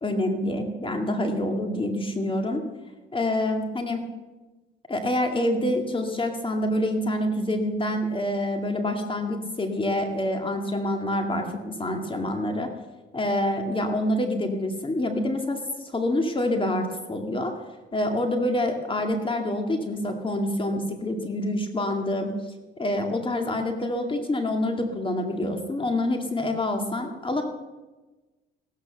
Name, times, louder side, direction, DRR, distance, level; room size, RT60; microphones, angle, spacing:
voice 1, 0.0-2.6 3.1-4.1 4.9-12.7 13.1-17.5 17.9-22.3 22.8-27.4, left 1 dB, 25° left, 4 dB, 2.2 m, -26 dB
16.0 x 13.0 x 6.7 m, 1.2 s
cardioid pair, 90°, 20 cm